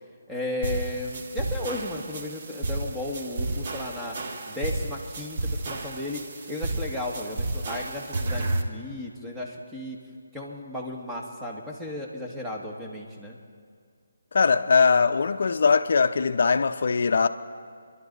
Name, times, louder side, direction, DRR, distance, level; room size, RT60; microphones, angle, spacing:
voice 1, 0.3-4.2 4.5-6.2 6.5-10.0 10.3-13.4, left 1 dB, 5° right, 1.6 m, -34 dB
sound 1, 0.6-8.6, right 2 dB, 40° right, 1.3 m, -32 dB
voice 2, 14.3-17.3, left 5 dB, 60° left, 0.7 m, -21 dB
28.0 x 12.0 x 4.0 m
figure-of-eight pair, 155°, 0 cm